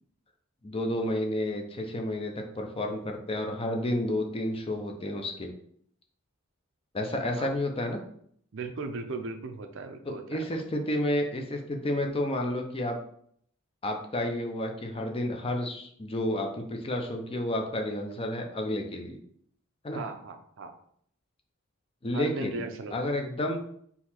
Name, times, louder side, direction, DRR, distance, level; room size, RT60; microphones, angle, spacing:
voice 1, 0.6-5.5 6.9-8.0 10.1-13.0 13.8-19.2 19.8-20.0 22.0-22.6 22.9-23.6, left 1 dB, 25° left, 3 dB, 0.6 m, -31 dB
voice 2, 8.5-10.2 10.5-10.6 19.9-20.7 22.1-23.0, right 3 dB, 65° right, 7 dB, 0.5 m, -37 dB
3.9 x 2.8 x 4.3 m, 0.64 s
head